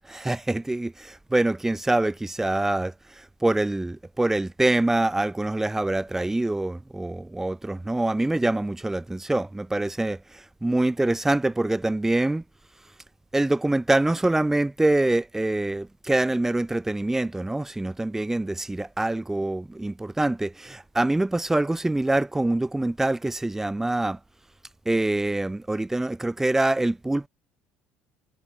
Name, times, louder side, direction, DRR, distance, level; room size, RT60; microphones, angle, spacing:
voice 1, 0.1-2.9 3.4-10.2 10.6-12.4 13.3-24.2 24.9-27.3, right 2 dB, 10° right, 6.4 m, -25 dB
supercardioid pair, 105°, 4 cm